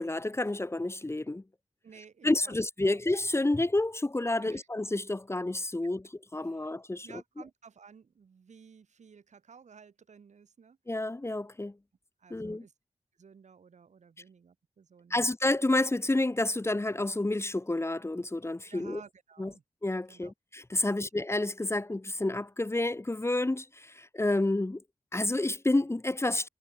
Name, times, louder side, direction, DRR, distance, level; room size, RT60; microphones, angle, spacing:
voice 1, 0.0-1.4 2.2-6.0 6.3-7.1 10.9-11.8 12.3-12.6 15.1-19.0 19.4-19.5 19.8-24.8 25.1-26.5, left 2 dB, 20° left, 1.4 m, -29 dB
voice 2, 1.8-2.6 2.8-3.0 4.4-4.7 6.4-6.7 7.0-10.8 12.2-12.7 13.2-15.2 18.7-19.6 20.1-20.3 20.8-21.1, right 6 dB, 80° right, 7.7 m, -54 dB
cardioid pair, 65°, 12 cm